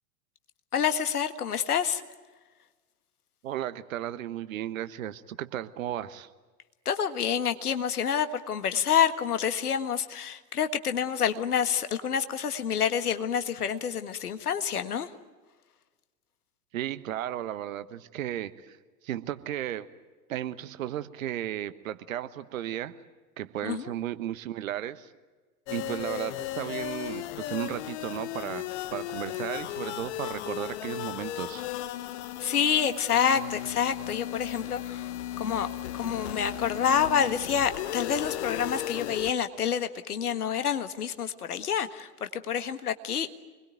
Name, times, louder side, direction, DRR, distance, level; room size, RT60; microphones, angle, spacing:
voice 1, 0.7-2.0 6.8-15.1 23.6-23.9 32.4-35.1 35.4-35.7 35.9-43.3, left 8 dB, 70° left, 10 dB, 1.7 m, -28 dB
voice 2, 3.4-6.3 16.7-18.8 19.0-19.9 20.3-22.9 23.4-25.1 25.7-31.7, right 12 dB, 60° right, 13 dB, 1.3 m, -34 dB
sound 1, 25.7-39.3, left 13 dB, 50° left, 1.1 m, -36 dB
26.0 x 21.0 x 9.3 m, 1.3 s
figure-of-eight pair, 90°, 46 cm